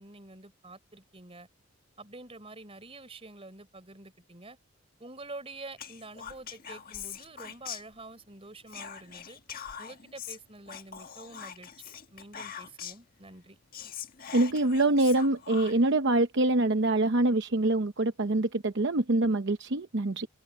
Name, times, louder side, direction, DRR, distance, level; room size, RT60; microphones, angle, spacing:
voice 1, 0.0-1.5 2.0-4.6 5.0-9.4 9.8-13.6, right 2 dB, 25° right, 3.9 m, -47 dB
Whispering, 5.8-8.3 8.7-13.1 13.4-13.5 13.7-16.0, left 8 dB, 45° left, 1.6 m, -43 dB
voice 2, 14.3-20.3, right 2 dB, 55° right, 0.8 m, -25 dB
open air
head